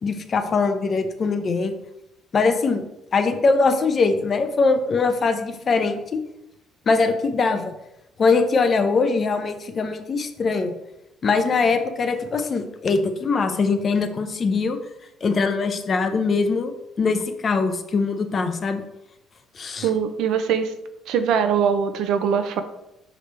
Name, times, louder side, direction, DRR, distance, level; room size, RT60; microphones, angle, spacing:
voice 1, 0.0-1.7 2.3-2.8 3.1-6.2 6.9-7.7 8.2-10.7 11.2-14.8 15.2-18.8 19.6-19.9, left 4 dB, 30° left, 7 dB, 0.6 m, -22 dB
voice 2, 19.8-20.7 21.1-22.6, right 7 dB, 65° right, 9 dB, 0.6 m, -22 dB
6.5 x 4.8 x 3.3 m, 0.87 s
cardioid pair, 170°, 0 cm